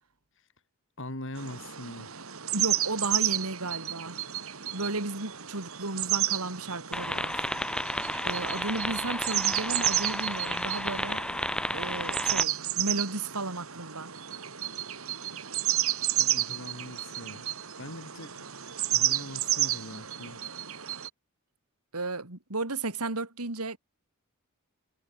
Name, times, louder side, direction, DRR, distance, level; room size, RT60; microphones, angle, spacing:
voice 1, 1.0-2.1 16.2-17.5 17.8-18.5 18.9-20.5, left 1 dB, 60° left, 5.4 m, -42 dB
sound 1, 1.4-21.1, right 12 dB, 70° right, 2.4 m, -32 dB
voice 2, 2.5-4.2 4.7-7.5 8.2-11.2 11.7-14.1 21.9-23.8, right 2 dB, 85° right, 3.2 m, -34 dB
sound 2, 6.9-12.4, left 1 dB, 5° left, 5.1 m, -32 dB
head